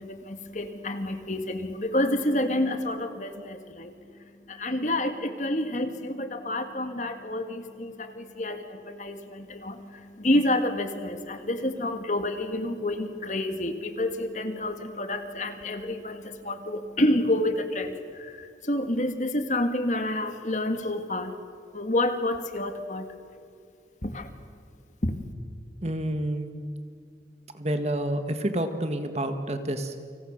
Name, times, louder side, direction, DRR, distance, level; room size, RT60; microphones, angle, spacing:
voice 1, 0.0-4.0 4.5-21.3 21.7-23.1 24.0-24.3 25.0-25.1, left 1 dB, 45° left, 7 dB, 1.9 m, -29 dB
voice 2, 25.8-26.5 27.5-30.0, right 1 dB, 35° right, 7 dB, 1.9 m, -29 dB
30.0 x 26.0 x 6.6 m, 2.3 s
head